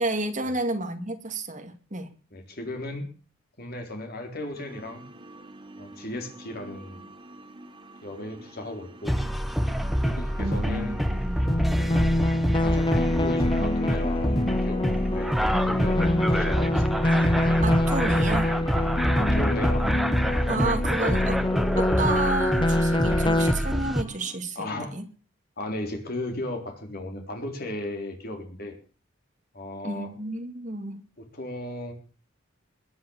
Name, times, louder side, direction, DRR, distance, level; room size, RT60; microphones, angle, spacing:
voice 1, 0.0-2.1 10.4-11.5 17.6-18.5 20.5-21.4 21.8-25.1 29.8-31.0, right 2 dB, 40° right, 6 dB, 2.3 m, -31 dB
voice 2, 2.3-3.1 3.6-5.0 5.8-7.0 8.0-9.2 10.0-11.1 12.6-15.3 15.7-16.9 19.2-19.9 21.0-21.1 24.6-25.0 25.6-28.7 29.5-30.1 31.2-31.9, left 1 dB, 50° left, 3 dB, 4.1 m, -35 dB
sound 1, 4.5-24.4, right 1 dB, 25° right, 1.5 m, -48 dB
sound 2, 9.1-24.0, equal, ahead, 0.9 m, -26 dB
sound 3, 11.5-23.5, left 1 dB, 25° left, 1.0 m, -26 dB
21.5 x 7.9 x 7.3 m, 0.39 s
head